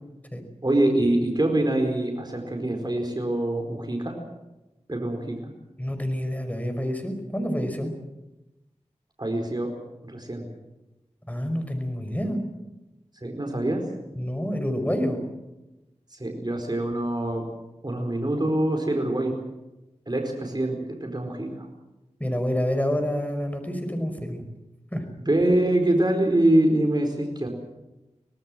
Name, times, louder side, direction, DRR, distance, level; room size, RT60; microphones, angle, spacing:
voice 1, 0.6-4.2 4.9-5.4 9.2-9.7 10.0-10.4 13.2-13.8 16.1-17.4 17.8-19.3 20.1-21.7 25.3-27.5, right 1 dB, 35° right, 3 dB, 4.6 m, -24 dB
voice 2, 5.8-7.9 11.3-12.4 14.2-15.2 22.2-24.4 24.9-25.0, equal, 15° left, 7 dB, 5.4 m, -28 dB
25.0 x 18.5 x 7.7 m, 1.0 s
wide cardioid pair, 45°, 12 cm